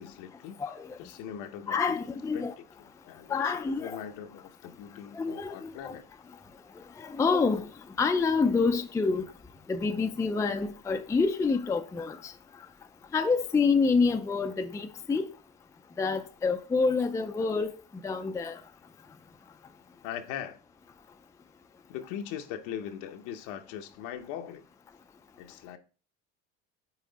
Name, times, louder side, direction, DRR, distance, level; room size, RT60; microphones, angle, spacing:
voice 1, 0.0-0.6 1.0-2.0 2.3-6.2 20.0-20.6 21.9-24.6 25.4-25.8, left 9 dB, 80° left, 0.8 m, -41 dB
voice 2, 1.7-2.5 3.3-4.0 5.1-6.0 7.0-7.7 8.0-9.2 9.7-12.3 13.1-15.3 16.0-17.7 18.0-18.6, left 4 dB, 10° left, 0.4 m, -27 dB
5.9 x 4.2 x 4.0 m
cardioid pair, 115°, 31 cm